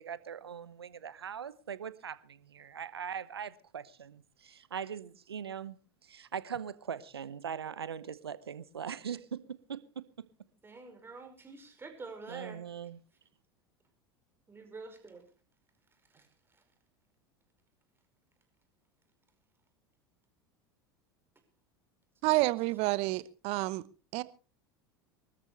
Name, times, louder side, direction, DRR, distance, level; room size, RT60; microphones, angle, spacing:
voice 1, 0.0-10.3 12.3-13.0, right 7 dB, 85° right, 0.8 m, -41 dB
voice 2, 10.6-12.6 14.5-15.2 16.1-16.6, right 4 dB, 20° right, 5.2 m, -47 dB
voice 3, 22.2-23.8 24.1-24.2, right 20 dB, 50° right, 0.9 m, -29 dB
23.5 x 13.5 x 3.2 m
figure-of-eight pair, 80°, 13 cm